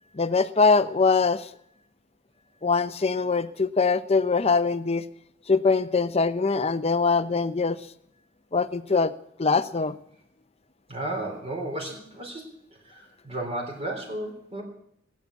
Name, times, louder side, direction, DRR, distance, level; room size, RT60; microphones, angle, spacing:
voice 1, 0.1-1.5 2.6-5.0 5.5-7.8 8.5-9.1 9.4-9.9, left 4 dB, 35° left, 12 dB, 0.7 m, -23 dB
voice 2, 10.9-12.4 12.8-14.6, right 1 dB, 35° right, 0 dB, 3.6 m, -33 dB
18.0 x 8.4 x 8.4 m, 0.71 s
head